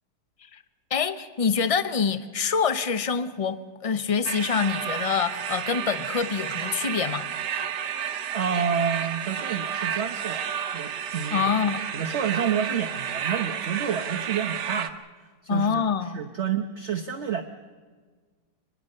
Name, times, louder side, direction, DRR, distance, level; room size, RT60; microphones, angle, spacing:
voice 1, 0.9-7.3 11.3-11.8 15.5-16.2, left 6 dB, 30° left, 0.6 m, -26 dB
sound 1, 4.3-14.9, right 8 dB, 85° right, 1.6 m, -31 dB
voice 2, 8.3-11.4 11.9-15.0 15.4-17.4, right 7 dB, 45° right, 1.2 m, -29 dB
25.0 x 20.5 x 6.5 m
omnidirectional pair, 1.8 m